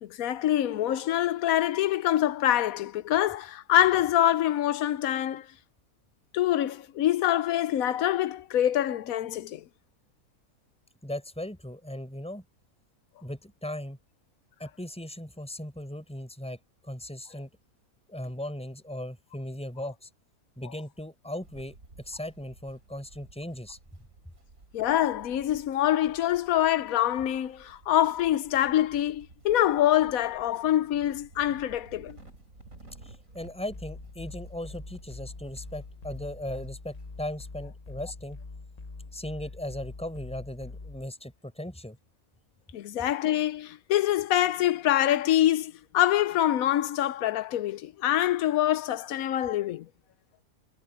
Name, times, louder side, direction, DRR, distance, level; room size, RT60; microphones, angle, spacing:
voice 1, 0.0-5.5 6.3-9.6 24.7-32.2 42.7-49.9, left 12 dB, 70° left, 1.1 m, -25 dB
voice 2, 11.0-12.4 13.2-14.0 14.6-17.5 18.1-20.1 20.6-23.8 33.0-38.4 39.1-42.0, left 1 dB, 5° left, 5.2 m, -38 dB
sound 1, 21.4-37.3, right 2 dB, 55° right, 4.2 m, -53 dB
sound 2, 33.7-41.1, left 3 dB, 30° left, 1.0 m, -44 dB
omnidirectional pair, 1.6 m